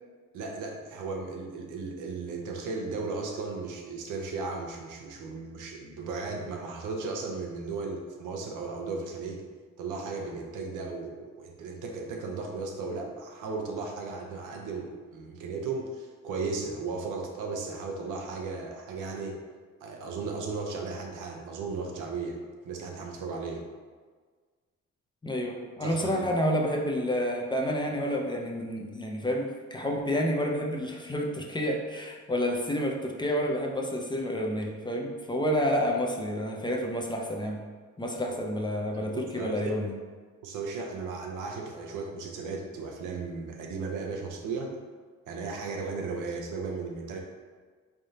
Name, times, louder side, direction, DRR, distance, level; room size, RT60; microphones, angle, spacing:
voice 1, 0.3-9.4 9.8-19.4 19.8-22.4 22.6-23.6 25.8-26.3 38.9-39.8 40.4-44.7 45.3-47.2, right 4 dB, 90° right, 1 dB, 0.7 m, -35 dB
voice 2, 25.2-37.6 38.0-39.9, equal, 15° left, 0 dB, 0.5 m, -29 dB
3.7 x 3.4 x 2.7 m, 1.5 s
cardioid pair, 90°, 30 cm